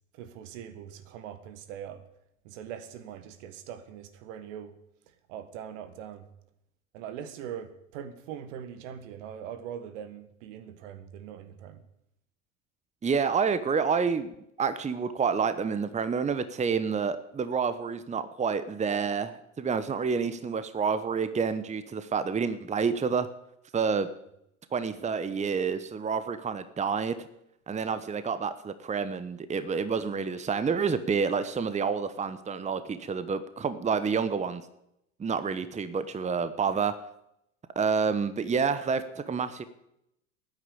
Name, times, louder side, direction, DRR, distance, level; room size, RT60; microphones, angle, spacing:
voice 1, 0.1-2.1 2.4-4.8 5.1-6.3 6.9-11.8, right 9 dB, 65° right, 1.8 m, -42 dB
voice 2, 13.0-23.3 23.7-24.1 24.7-27.3 27.7-34.6 35.2-36.9 37.7-39.7, right 5 dB, 15° right, 1.0 m, -28 dB
14.5 x 9.5 x 8.5 m
hypercardioid pair, 75°, 40 cm